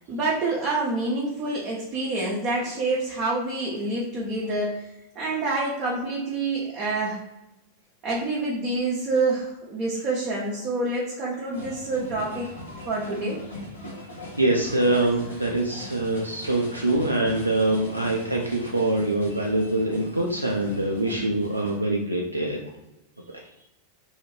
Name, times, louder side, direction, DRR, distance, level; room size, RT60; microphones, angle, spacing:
voice 1, 0.0-4.9 5.1-7.2 8.0-12.5 12.9-13.4 15.7-15.8 16.9-17.0, right 2 dB, 30° right, -6 dB, 0.9 m, -27 dB
sound 1, 11.5-21.8, left 1 dB, 75° left, 1.1 m, -40 dB
voice 2, 14.4-22.6 23.3-23.4, right 1 dB, 85° right, -1 dB, 0.4 m, -24 dB
3.1 x 2.6 x 3.2 m, 0.93 s
figure-of-eight pair, 90°, 0 cm